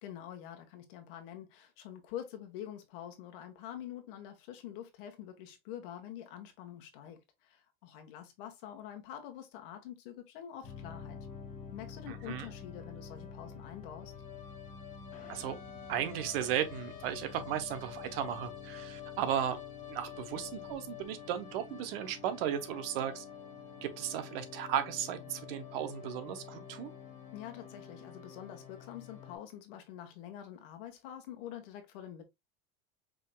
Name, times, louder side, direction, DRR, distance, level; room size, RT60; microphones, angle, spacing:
voice 1, 0.0-11.2 11.7-14.1 27.3-32.2, left 10 dB, 65° left, 1.5 m, -46 dB
sound 1, 10.6-29.4, left 7 dB, 25° left, 1.5 m, -47 dB
voice 2, 12.1-12.5 15.3-15.6 15.9-19.6 19.9-23.2 23.8-26.9, right 10 dB, 70° right, 1.1 m, -35 dB
5.1 x 3.8 x 2.3 m
supercardioid pair, 170°, 30 cm